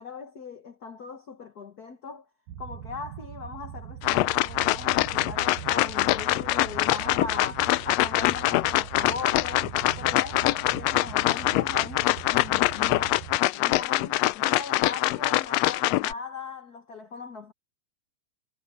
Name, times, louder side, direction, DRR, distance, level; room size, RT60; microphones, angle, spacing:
voice 1, 0.0-2.2 2.6-9.7 10.0-13.2 13.5-17.5, left 4 dB, 55° left, 1.1 m, -39 dB
sound 1, 2.5-13.4, right 10 dB, 85° right, 2.3 m, -41 dB
sound 2, 4.0-16.1, left 18 dB, 85° left, 1.5 m, -24 dB
omnidirectional pair, 3.4 m